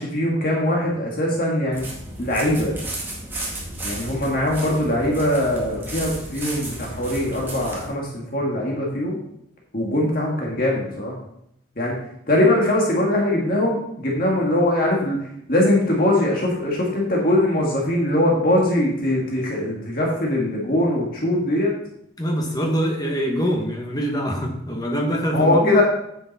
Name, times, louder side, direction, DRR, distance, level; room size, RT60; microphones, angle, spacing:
voice 1, 0.0-1.9 2.2-2.8 3.8-9.2 9.7-11.2 11.8-12.0 12.3-21.7 25.3-25.8, left 1 dB, 45° left, -2 dB, 1.9 m, -21 dB
sound 1, 1.7-7.9, right 1 dB, 10° right, 1.8 m, -33 dB
voice 2, 22.2-25.8, equal, 20° left, 1 dB, 1.3 m, -24 dB
9.2 x 7.0 x 4.3 m, 0.75 s
head